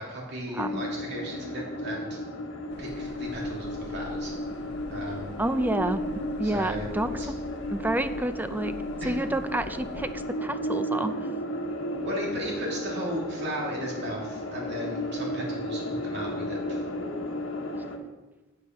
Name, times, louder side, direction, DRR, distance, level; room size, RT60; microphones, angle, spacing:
voice 1, 0.0-2.2 2.8-4.3 4.9-5.3 6.4-7.3 9.0-9.2 12.0-16.8, equal, 60° right, -3 dB, 2.9 m, -36 dB
voice 2, 0.5-0.8 5.4-6.0 6.4-7.1 7.7-8.7 9.0-11.2, right 1 dB, 10° right, 11 dB, 0.4 m, -29 dB
sound 1, 0.6-18.0, equal, 80° left, 1.2 m, -34 dB
sound 2, 2.7-10.2, left 1 dB, 60° left, 1.0 m, -45 dB
9.1 x 8.5 x 5.4 m, 1.1 s
head